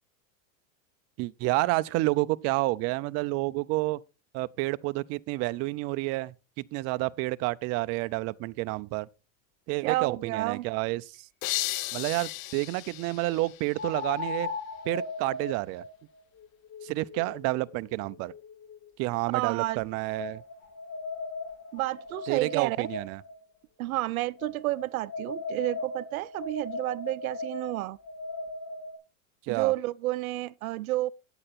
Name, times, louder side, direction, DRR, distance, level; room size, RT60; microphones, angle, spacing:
voice 1, 1.2-4.0 4.3-9.1 9.7-11.3 11.9-14.5 14.9-15.8 16.8-18.3 19.0-20.4 22.3-23.2 29.4-29.7, right 21 dB, 40° right, 0.4 m, -29 dB
voice 2, 9.8-10.7 19.3-19.8 21.7-22.9 23.8-28.0 29.5-31.1, right 17 dB, 80° right, 0.6 m, -30 dB
sound 1, 11.1-11.2 13.7-18.9 19.6-23.4 24.4-29.0, left 3 dB, 45° left, 3.4 m, -38 dB
sound 2, 11.4-14.2, left 18 dB, 75° left, 0.5 m, -35 dB
8.9 x 8.6 x 4.2 m
supercardioid pair, 115°, 42 cm